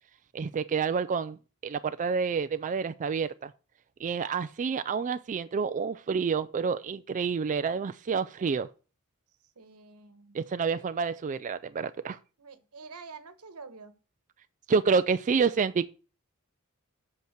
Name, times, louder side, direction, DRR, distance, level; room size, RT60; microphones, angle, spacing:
voice 1, 0.3-1.4 1.6-3.5 4.0-8.7 10.3-12.2 14.7-15.9, right 5 dB, 35° right, 0.3 m, -28 dB
voice 2, 9.6-10.4 12.4-14.0, right 4 dB, 85° right, 1.2 m, -47 dB
8.2 x 5.8 x 6.5 m
head